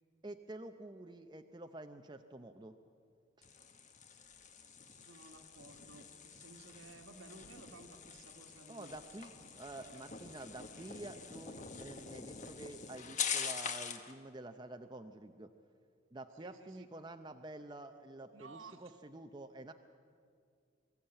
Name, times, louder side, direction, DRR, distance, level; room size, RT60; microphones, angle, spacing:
voice 1, 0.2-2.8 3.4-3.5 8.7-15.5 16.1-19.7, right 2 dB, 20° right, 6 dB, 0.6 m, -49 dB
sound 1, 3.4-14.1, left 6 dB, 35° left, 1.2 m, -44 dB
voice 2, 4.8-9.1 9.5-9.6 9.8-10.2 16.4-16.9 18.3-18.8, right 3 dB, 75° right, 4 dB, 1.8 m, -56 dB
23.5 x 14.5 x 8.9 m, 2.3 s
head